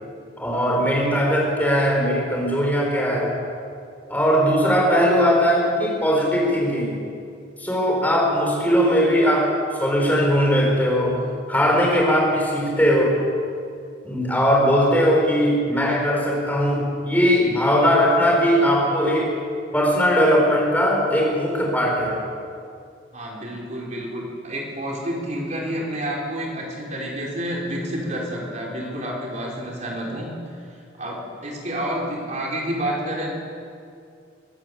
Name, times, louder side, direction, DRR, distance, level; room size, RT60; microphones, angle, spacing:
voice 1, 0.4-3.3 4.1-6.9 7.6-9.5 9.8-11.2 11.5-13.2 14.0-19.3 19.7-22.2, equal, 10° left, -2 dB, 4.9 m, -19 dB
voice 2, 23.1-30.3 30.7-33.3, equal, 35° right, -2 dB, 4.7 m, -29 dB
23.0 x 14.5 x 8.4 m, 2.3 s
head